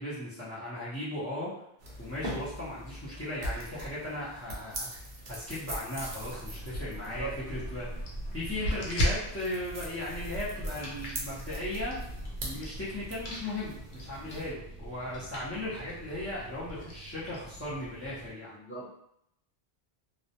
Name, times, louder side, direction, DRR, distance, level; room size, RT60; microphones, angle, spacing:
voice 1, 0.0-1.5 2.0-7.9 8.3-12.0 12.4-18.5, left 1 dB, 20° left, -11 dB, 0.4 m, -37 dB
sound 1, 1.8-14.5, right 1 dB, 50° right, 0.6 m, -43 dB
sound 2, 6.2-18.3, equal, 90° left, 0.9 m, -38 dB
voice 2, 6.9-7.3 18.5-18.9, right 4 dB, 20° right, -10 dB, 1.0 m, -40 dB
2.2 x 2.0 x 2.7 m, 0.75 s
omnidirectional pair, 1.0 m